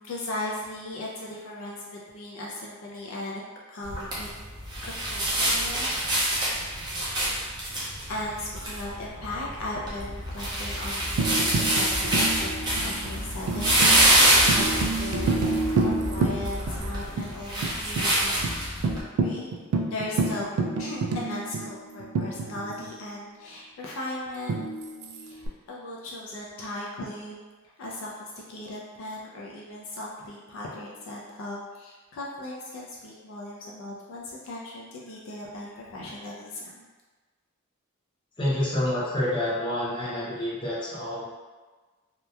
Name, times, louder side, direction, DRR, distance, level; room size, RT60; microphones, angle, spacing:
voice 1, 0.0-3.4 3.7-4.3 4.8-5.9 8.1-12.6 12.8-15.3 15.8-18.3 18.9-20.5 20.8-24.7 25.2-27.4 27.8-36.9, left 1 dB, 65° left, -4 dB, 0.4 m, -37 dB
sound 1, 3.8-19.0, right 1 dB, 20° right, 0.6 m, -26 dB
Tambourine, 11.2-16.9 17.2-17.3 17.6-18.1 18.4-18.5 18.8-23.0 24.5-25.5, right 3 dB, 85° right, 0.3 m, -29 dB
voice 2, 38.4-41.2, left 1 dB, 20° left, -8 dB, 0.6 m, -28 dB
2.8 x 2.1 x 2.2 m, 1.3 s
head